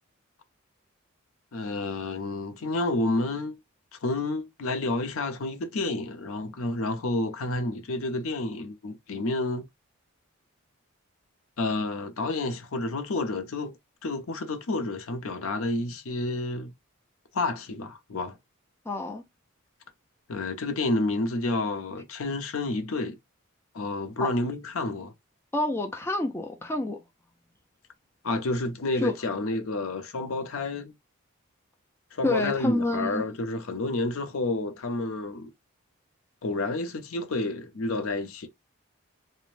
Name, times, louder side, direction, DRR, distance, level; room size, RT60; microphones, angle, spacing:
voice 1, 1.5-3.6 4.0-9.7 11.6-13.8 14.0-16.7 17.3-18.4 20.3-23.2 23.7-25.1 28.2-30.9 32.1-35.5 36.4-38.5, left 2 dB, 70° left, 0.6 m, -30 dB
voice 2, 18.9-19.2 24.2-24.3 25.5-27.0 29.0-29.1 32.2-33.2, left 2 dB, 10° left, 0.4 m, -28 dB
2.5 x 2.1 x 3.1 m
head